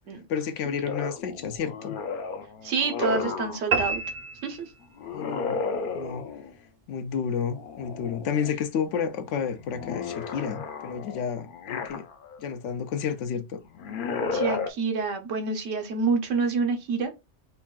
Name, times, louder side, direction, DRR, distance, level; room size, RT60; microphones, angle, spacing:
voice 1, 0.3-2.0 5.1-5.6 5.9-6.3 6.9-12.1 12.4-13.6, left 7 dB, 80° left, 0.9 m, -31 dB
sound 1, 0.8-3.7 5.0-6.6 7.5-8.5 8.9-12.4 13.7-14.7, left 5 dB, 60° left, 0.6 m, -33 dB
voice 2, 2.6-4.0 4.4-4.7 14.3-17.2, right 4 dB, 85° right, 1.1 m, -27 dB
sound 2, 3.7-5.2, right 4 dB, 60° right, 0.5 m, -29 dB
5.5 x 2.3 x 2.3 m
omnidirectional pair, 1.2 m